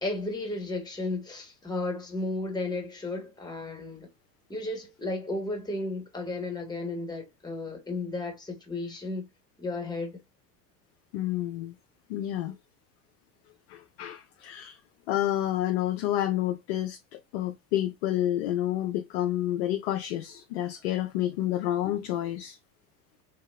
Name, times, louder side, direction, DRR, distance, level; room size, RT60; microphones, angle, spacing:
voice 1, 0.0-4.1 4.5-9.3 9.6-10.2, left 2 dB, 10° left, 1.3 m, -34 dB
voice 2, 11.1-11.7 12.1-12.5 13.7-14.8 15.1-22.6, left 13 dB, 40° left, 0.5 m, -29 dB
3.3 x 2.8 x 3.3 m
figure-of-eight pair, 75°, 49 cm